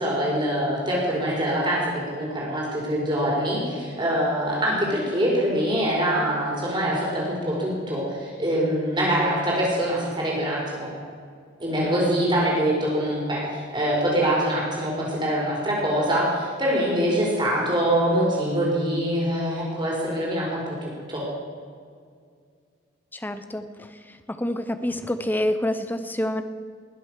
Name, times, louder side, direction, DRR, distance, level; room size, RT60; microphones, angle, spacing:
voice 1, 0.0-1.8 2.1-10.9 11.6-21.3, equal, 25° right, -4 dB, 5.1 m, -24 dB
voice 2, 23.1-26.4, left 1 dB, 10° left, 10 dB, 0.7 m, -28 dB
20.0 x 8.3 x 6.5 m, 2.1 s
head